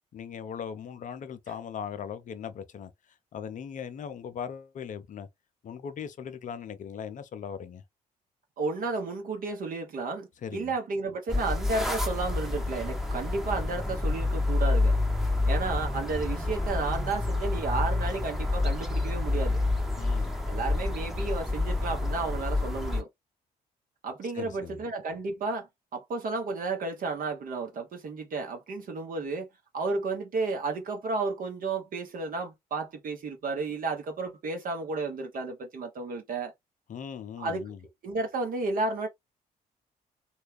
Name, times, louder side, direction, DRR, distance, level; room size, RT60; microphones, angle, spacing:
voice 1, 0.1-2.9 3.3-5.3 5.6-7.8 10.4-10.7 20.0-20.4 24.3-24.8 36.9-37.8, left 7 dB, 40° left, 0.6 m, -39 dB
voice 2, 8.6-14.9 15.5-19.6 20.5-23.1 24.0-29.5 29.7-36.5 37.4-37.7 38.0-39.1, right 3 dB, 45° right, 0.8 m, -32 dB
sound 1, 11.3-23.0, left 2 dB, ahead, 0.9 m, -28 dB
3.2 x 2.4 x 3.2 m
figure-of-eight pair, 45°, 20 cm